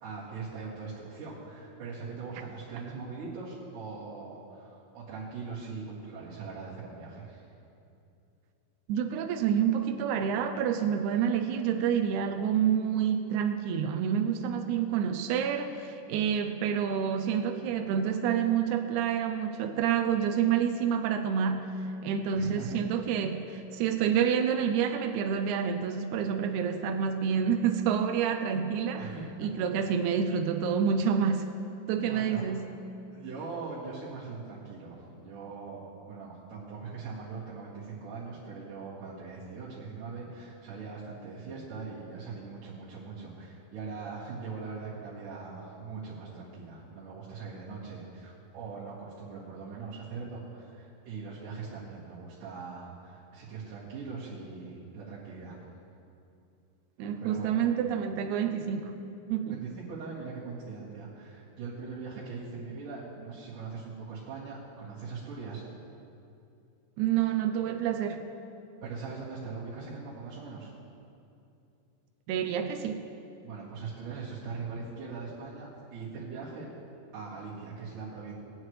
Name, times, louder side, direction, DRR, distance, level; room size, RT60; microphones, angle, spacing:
voice 1, 0.0-7.5 22.3-22.8 29.0-29.3 32.1-32.6 33.1-55.6 57.2-57.6 59.5-65.6 68.8-70.7 73.4-76.7 77.1-78.3, right 4 dB, 70° right, -10 dB, 3.6 m, -41 dB
voice 2, 8.9-29.0 29.4-31.5 31.9-32.7 57.0-59.0 59.3-59.6 67.0-68.3 72.3-73.0, right 8 dB, 90° right, 6 dB, 1.7 m, -28 dB
19.0 x 9.2 x 3.2 m, 2.7 s
omnidirectional pair, 4.0 m